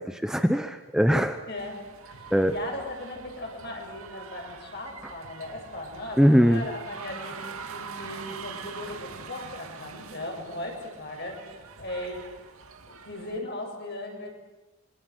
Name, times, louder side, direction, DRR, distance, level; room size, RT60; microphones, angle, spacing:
voice 1, 0.0-1.4 2.3-2.5 6.2-6.7, equal, 5° right, 7 dB, 0.9 m, -21 dB
voice 2, 1.5-7.4 7.7-12.2 12.8-14.3, left 1 dB, 50° left, 2 dB, 7.5 m, -38 dB
sound 1, 1.6-13.4, right 5 dB, 85° right, 2.4 m, -44 dB
27.0 x 24.5 x 8.1 m, 1.1 s
head